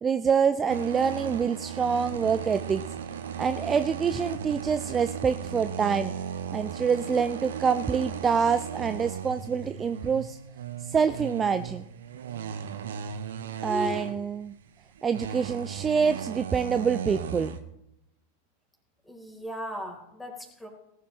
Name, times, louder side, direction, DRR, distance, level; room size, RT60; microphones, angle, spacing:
voice 1, 0.0-2.8 3.4-6.1 6.5-10.4 10.8-11.8 13.6-14.5 15.0-17.5, right 6 dB, 20° right, 11 dB, 0.5 m, -26 dB
sound 1, 0.7-14.6 14.9-17.6, right 8 dB, 60° right, 1.1 m, -36 dB
voice 2, 13.7-14.0 19.1-20.7, equal, 5° left, 1 dB, 4.3 m, -36 dB
19.5 x 11.5 x 3.3 m, 0.83 s
figure-of-eight pair, 90°, 0 cm